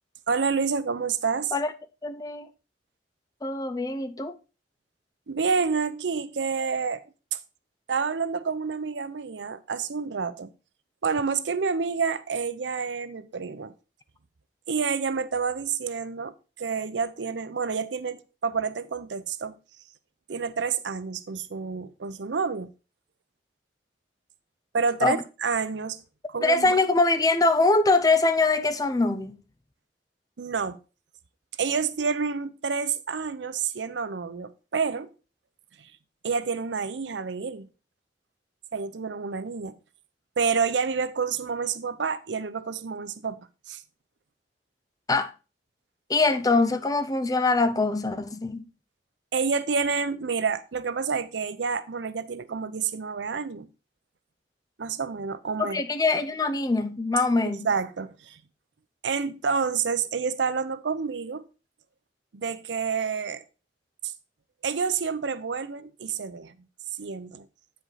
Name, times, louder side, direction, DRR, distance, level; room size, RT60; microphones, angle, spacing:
voice 1, 0.3-1.5 5.3-7.0 7.3-7.4 7.9-10.5 11.0-13.7 14.7-19.6 20.3-22.7 24.7-26.0 26.3-26.8 30.4-30.8 31.6-35.1 35.8-35.9 36.2-37.7 38.7-39.8 40.4-43.4 43.7-43.8 49.3-53.7 54.8-55.8 57.4-58.4 59.0-61.5 62.3-63.4 64.0-64.1 64.6-66.6 67.0-67.5, right 5 dB, 85° right, 0.6 m, -28 dB
voice 2, 2.0-2.5 3.4-4.4 25.0-25.2 26.4-29.4 45.1-45.3 46.1-48.6 55.6-57.7, left 3 dB, 20° left, 0.5 m, -23 dB
8.7 x 5.2 x 4.0 m
head